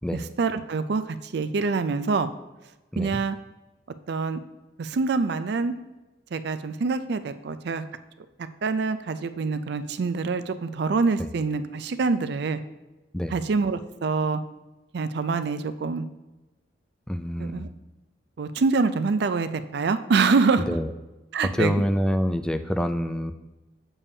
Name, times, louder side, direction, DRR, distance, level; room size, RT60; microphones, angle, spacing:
voice 1, 0.1-2.3 3.0-3.4 4.1-4.4 4.8-5.7 6.3-7.8 8.6-12.6 13.3-14.4 14.9-16.0 17.4-17.7 18.4-20.6 21.3-21.7, right 4 dB, 60° right, 11 dB, 0.4 m, -25 dB
voice 2, 17.1-17.7 20.7-20.9 21.5-23.3, equal, 5° left, 9 dB, 0.3 m, -26 dB
7.1 x 7.0 x 2.7 m, 1.1 s
head